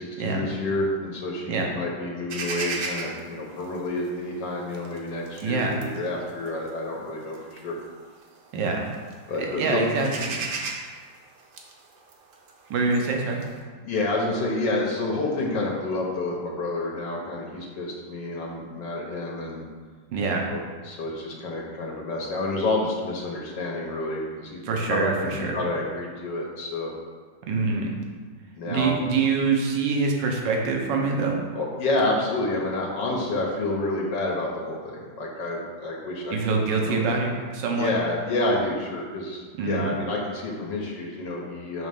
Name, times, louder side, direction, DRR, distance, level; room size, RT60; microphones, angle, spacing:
voice 1, 0.0-7.8 9.3-9.8 13.8-19.6 20.5-24.6 24.9-26.9 28.6-29.0 31.5-36.4 36.8-37.0 37.7-41.9, left 2 dB, 85° left, -2 dB, 1.6 m, -29 dB
sound 1, 2.3-8.5 8.8-9.4 9.7-13.6, right 4 dB, 60° right, 1.0 m, -36 dB
voice 2, 5.4-5.8 8.5-8.9 9.5-10.4 12.7-13.4 20.1-20.5 24.6-25.6 27.5-28.0 28.7-31.4 36.3-37.9 39.6-39.9, right 4 dB, 90° right, 1 dB, 1.5 m, -25 dB
6.2 x 3.1 x 5.2 m, 1.5 s
omnidirectional pair, 1.9 m